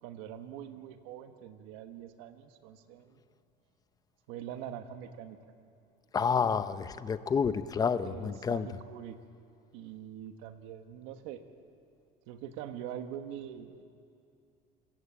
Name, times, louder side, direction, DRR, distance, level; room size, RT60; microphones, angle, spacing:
voice 1, 0.0-3.2 4.3-5.4 8.0-9.2 9.7-11.4 12.3-13.8, right 10 dB, 75° right, 8 dB, 1.4 m, -43 dB
voice 2, 6.1-8.7, left 6 dB, 20° left, 12 dB, 0.6 m, -29 dB
26.0 x 15.0 x 8.6 m, 2.4 s
cardioid pair, 150°, 20 cm